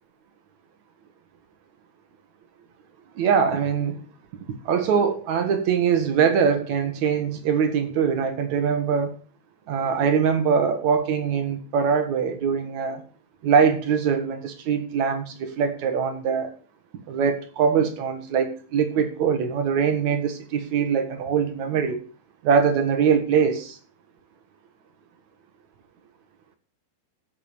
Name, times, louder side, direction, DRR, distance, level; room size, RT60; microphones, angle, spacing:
voice 1, 3.2-4.1 4.7-9.2 9.7-13.0 13.4-16.5 17.1-22.0 22.4-23.8, right 6 dB, 65° right, 1.9 m, -22 dB
8.8 x 8.5 x 6.8 m
omnidirectional pair, 5.0 m